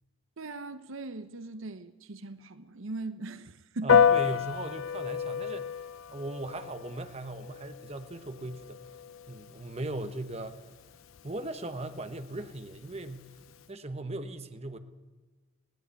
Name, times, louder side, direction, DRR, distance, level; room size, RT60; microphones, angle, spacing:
voice 1, 0.4-4.1, right 2 dB, 65° right, 0.8 m, -39 dB
voice 2, 3.8-5.9 6.1-8.8 9.3-10.5 11.2-13.3 13.7-14.8, right 2 dB, 30° right, 1.1 m, -38 dB
Piano, 3.9-13.6, left 7 dB, 70° left, 0.6 m, -31 dB
20.0 x 17.0 x 8.3 m
head